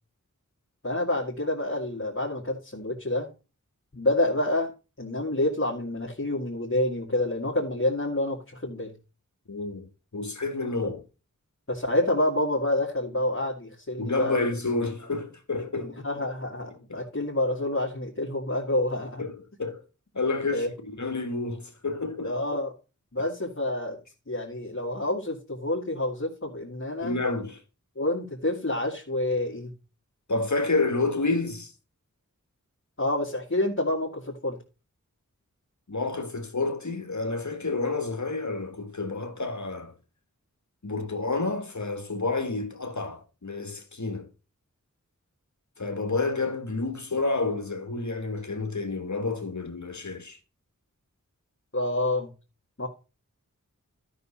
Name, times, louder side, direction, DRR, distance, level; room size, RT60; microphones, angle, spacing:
voice 1, 0.8-3.3 3.9-4.7 5.0-8.9 10.8-10.9 11.7-14.5 15.5-19.2 20.5-20.7 22.2-22.7 23.1-24.0 24.3-27.2 28.0-29.7 33.0-34.6 51.7-52.3 52.8-52.9, left 1 dB, 45° left, 2.2 m, -28 dB
voice 2, 9.5-9.9 10.1-11.0 14.0-15.9 16.9-17.0 19.2-19.8 20.1-22.4 23.2-23.3 27.0-27.6 30.3-31.7 35.9-39.9 40.8-44.3 45.8-50.4, left 3 dB, 60° left, 1.8 m, -29 dB
12.5 x 6.3 x 4.2 m
wide cardioid pair, 50°, 32 cm